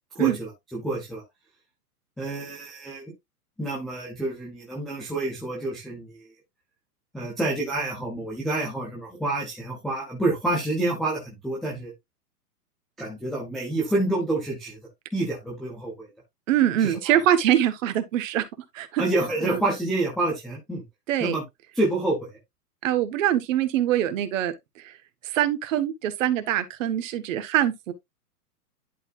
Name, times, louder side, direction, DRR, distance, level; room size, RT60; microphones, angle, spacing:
voice 1, 0.2-1.2 2.2-3.1 3.6-6.3 7.1-11.9 13.0-14.8 15.1-16.1 16.8-17.2 19.0-20.8 21.2-21.4 21.7-22.2, right 2 dB, ahead, 0.3 m, -28 dB
voice 2, 16.5-18.5 18.7-19.0 19.4-19.6 21.1-21.3 22.8-24.5 25.2-27.9, right 11 dB, 55° right, 1.6 m, -23 dB
11.0 x 4.3 x 2.5 m
hypercardioid pair, 120°, 47 cm